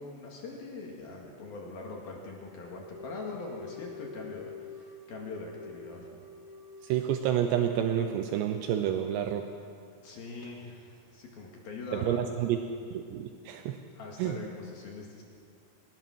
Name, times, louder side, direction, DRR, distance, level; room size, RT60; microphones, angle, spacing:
voice 1, 0.0-6.1 10.0-12.2 13.9-15.2, left 3 dB, 60° left, -1 dB, 3.7 m, -42 dB
sound 1, 2.7-9.5, left 4 dB, 80° left, 4.6 m, -47 dB
voice 2, 6.8-9.4 12.0-12.6 12.9-13.8 14.2-14.4, right 10 dB, 80° right, 6 dB, 3.0 m, -29 dB
21.0 x 19.5 x 6.4 m, 2.3 s
omnidirectional pair, 5.1 m